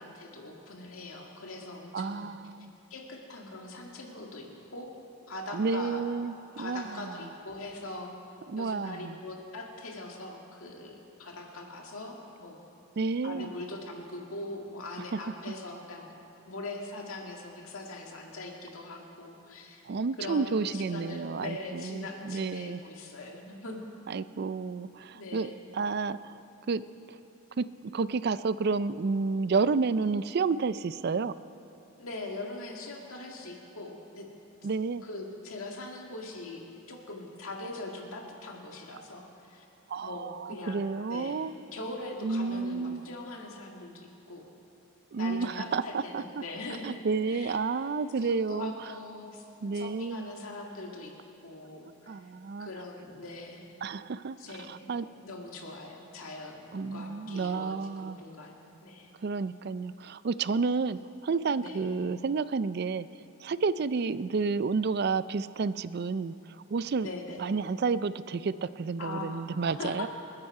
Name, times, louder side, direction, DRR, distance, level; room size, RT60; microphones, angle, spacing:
voice 1, 0.0-2.3 2.9-4.9 5.3-6.0 6.5-8.1 8.6-12.6 13.2-16.1 16.5-19.8 20.2-23.8 25.1-25.6 32.0-34.3 35.0-39.7 40.0-44.5 45.2-47.0 47.2-47.6 48.2-51.1 51.4-52.3 52.6-53.6 54.4-59.1 61.6-61.8 67.0-67.4 69.0-69.4 69.8-70.1, left 2 dB, 90° left, 0 dB, 2.0 m, -41 dB
voice 2, 1.9-2.7 5.5-7.1 8.5-9.2 13.0-13.5 15.1-15.2 15.5-15.6 19.9-22.8 24.1-26.4 26.7-26.8 27.1-27.2 27.6-31.3 34.6-35.0 39.9-41.5 42.2-43.0 45.1-46.2 46.8-48.7 49.6-50.3 52.1-52.7 53.8-54.4 54.7-55.1 56.7-58.2 59.2-63.1 63.4-66.3 66.7-67.1 67.4-70.1, right 4 dB, 50° right, 15 dB, 0.4 m, -30 dB
28.5 x 9.8 x 4.8 m, 2.8 s
head